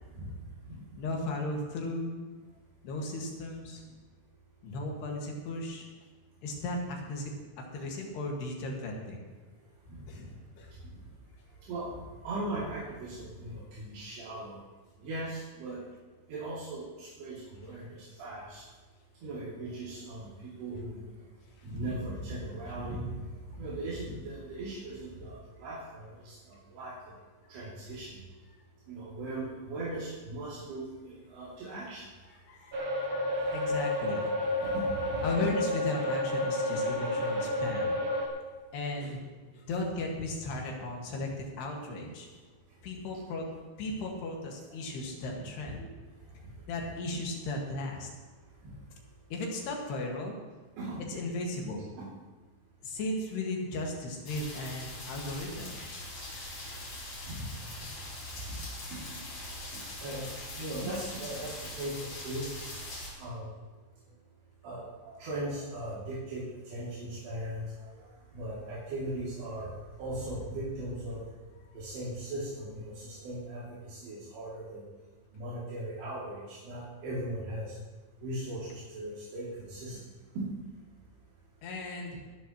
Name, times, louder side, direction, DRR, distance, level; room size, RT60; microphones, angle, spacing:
voice 1, 1.0-2.2 2.8-3.8 4.6-5.9 6.4-9.3 10.1-10.2 10.6-10.7 32.3-34.6 35.2-37.9 38.7-39.2 39.5-42.3 42.8-43.5 43.8-45.9 46.7-48.2 49.3-50.4 51.1-51.8 52.8-55.8 81.6-82.2, left 2 dB, 80° left, 0 dB, 4.0 m, -36 dB
voice 2, 12.2-14.6 15.0-15.8 16.3-17.8 18.2-18.6 19.2-20.3 20.6-21.0 21.6-23.1 23.5-26.3 26.7-26.9 27.5-28.0 28.9-32.0 34.6-34.8 35.1-35.2 50.8-51.0 51.9-52.0 57.3-57.5 59.7-60.3 60.6-61.9 62.2-62.4 63.2-63.5 64.6-64.8 65.1-66.4 66.7-67.6 68.3-69.7 70.0-71.2 71.7-74.8 75.3-77.7 78.2-80.0, right 1 dB, 75° right, -9 dB, 4.9 m, -38 dB
sound 1, 32.7-38.3, left 1 dB, 45° right, 2.7 m, -30 dB
sound 2, 54.3-63.1, left 1 dB, 40° left, 4.6 m, -42 dB
22.5 x 12.0 x 3.1 m, 1.3 s
omnidirectional pair, 4.7 m